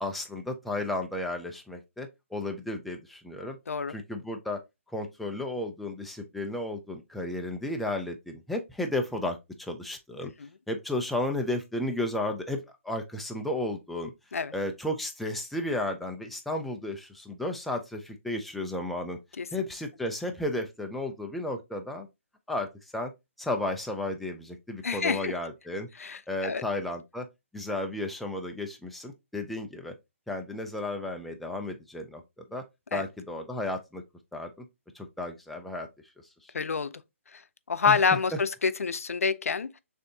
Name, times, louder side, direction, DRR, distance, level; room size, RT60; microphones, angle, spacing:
voice 1, 0.0-3.6 3.9-4.6 4.9-10.3 10.7-12.6 12.8-14.1 14.5-19.2 19.5-22.1 22.5-22.7 22.9-23.1 23.4-25.9 26.3-27.3 27.5-29.9 30.3-32.6 32.9-34.0 34.3-34.5 34.9-35.9 36.4-36.5 37.9-38.0, left 1 dB, ahead, 0.3 m, -33 dB
voice 2, 24.8-25.4 26.0-26.6 32.9-33.0 36.5-37.0 37.3-37.4 37.7-39.8, left 5 dB, 90° left, 0.5 m, -28 dB
6.6 x 2.7 x 2.7 m
hypercardioid pair, 160°, 8 cm